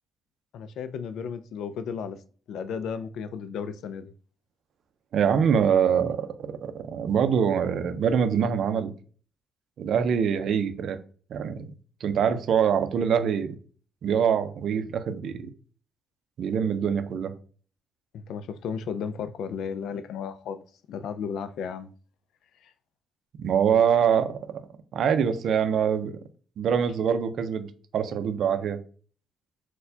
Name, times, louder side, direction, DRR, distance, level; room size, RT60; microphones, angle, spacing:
voice 1, 0.5-2.2 2.5-4.1 18.1-21.9 22.6-22.7 26.7-26.8, left 6 dB, 75° left, 0.3 m, -34 dB
voice 2, 5.1-8.9 9.8-11.0 11.3-11.7 12.0-13.6 14.0-15.5 16.4-17.3 23.4-24.6 24.9-26.2 26.6-28.8, right 7 dB, 70° right, 0.4 m, -24 dB
4.2 x 2.2 x 2.7 m
cardioid pair, 90°, 0 cm